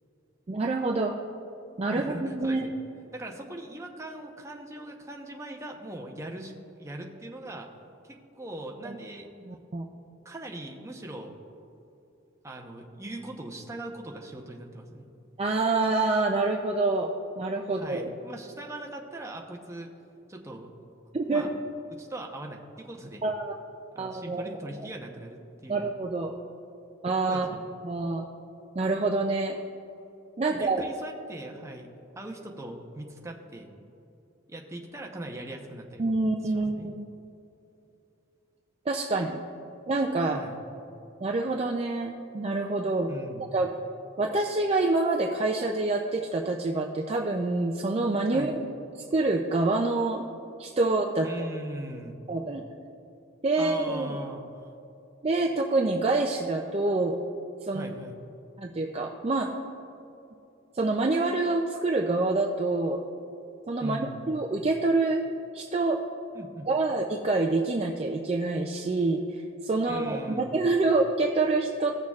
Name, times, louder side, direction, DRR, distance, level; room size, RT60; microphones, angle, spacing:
voice 1, 0.5-1.2 1.8-2.7 8.8-8.9 9.5-9.8 15.4-17.1 17.4-18.1 21.1-21.5 23.2-23.5 24.0-24.6 25.7-26.3 27.0-27.6 27.8-28.2 28.8-29.6 30.4-30.8 36.0-37.0 38.9-39.4 39.9-40.4 41.2-43.1 43.5-43.7 44.2-48.6 49.1-50.3 50.6-51.5 52.3-52.6 53.4-54.2 55.2-57.2 57.6-57.9 58.6-59.5 60.7-63.0 63.7-65.2 65.5-66.0 66.7-71.9, right 3 dB, 30° right, 1 dB, 0.4 m, -26 dB
voice 2, 1.9-2.7 3.1-6.5 6.8-7.7 8.0-9.3 10.2-11.3 12.4-15.0 17.7-19.9 20.3-20.7 21.3-21.5 21.9-23.2 23.9-25.8 27.3-27.7 30.4-31.9 32.1-33.7 34.5-36.0 36.4-36.9 40.3-40.6 43.1-43.5 48.3-48.5 51.2-52.2 53.6-54.7 57.7-58.2 63.8-64.3 66.3-66.7 69.8-70.6, right 1 dB, 15° right, 1 dB, 0.8 m, -40 dB
16.5 x 6.6 x 2.4 m, 2.8 s
head